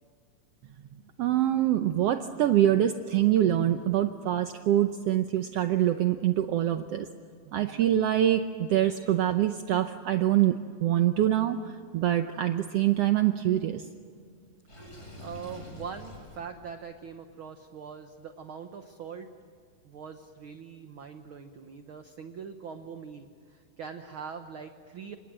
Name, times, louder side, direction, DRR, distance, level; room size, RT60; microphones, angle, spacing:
voice 1, 1.2-7.1 7.5-13.9, right 12 dB, 75° right, 7 dB, 1.4 m, -25 dB
Water / Sink (filling or washing), 14.7-16.5, left 1 dB, 25° left, 7.6 m, -45 dB
voice 2, 14.9-19.3 19.8-25.2, right 6 dB, 60° right, 7 dB, 1.4 m, -42 dB
29.0 x 26.5 x 7.6 m, 2.1 s
omnidirectional pair, 3.8 m